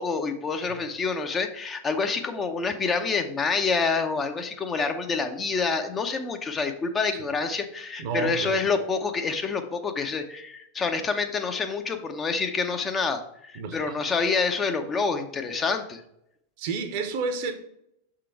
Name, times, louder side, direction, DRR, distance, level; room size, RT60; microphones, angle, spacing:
voice 1, 0.0-16.0, left 4 dB, 20° left, 6 dB, 0.7 m, -27 dB
voice 2, 8.0-8.6 13.5-14.0 16.6-17.5, right 5 dB, 50° right, 8 dB, 0.8 m, -30 dB
6.6 x 3.8 x 4.6 m, 0.76 s
figure-of-eight pair, 90°, 0 cm